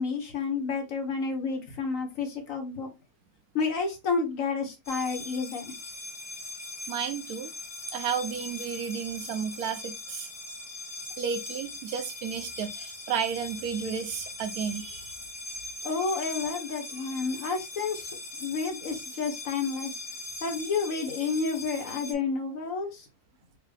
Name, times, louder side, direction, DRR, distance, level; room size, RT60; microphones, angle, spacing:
voice 1, 0.0-2.9 3.5-5.7 15.8-18.1 18.4-20.0 20.4-23.1, left 4 dB, 65° left, 1.5 m, -30 dB
sound 1, 4.8-22.1, left 2 dB, 30° left, 0.6 m, -40 dB
voice 2, 6.9-7.5 7.9-10.3 11.2-15.1, right 7 dB, 80° right, 1.1 m, -32 dB
4.5 x 2.5 x 3.3 m
omnidirectional pair, 1.6 m